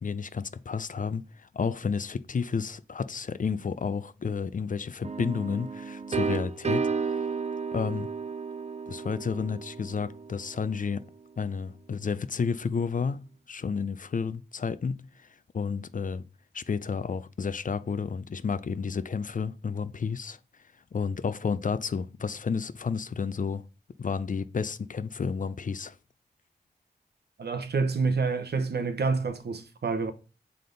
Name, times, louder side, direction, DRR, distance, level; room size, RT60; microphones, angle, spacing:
voice 1, 0.0-7.2 7.7-8.1 8.9-11.0 11.4-15.3 15.5-16.2 16.5-20.4 20.9-23.6 24.0-26.0, left 5 dB, 50° left, 0.5 m, -31 dB
sound 1, 5.0-10.7, right 5 dB, 40° right, 0.5 m, -33 dB
voice 2, 27.4-30.1, right 4 dB, 70° right, 0.9 m, -28 dB
7.6 x 3.6 x 3.9 m
cardioid pair, 55°, 17 cm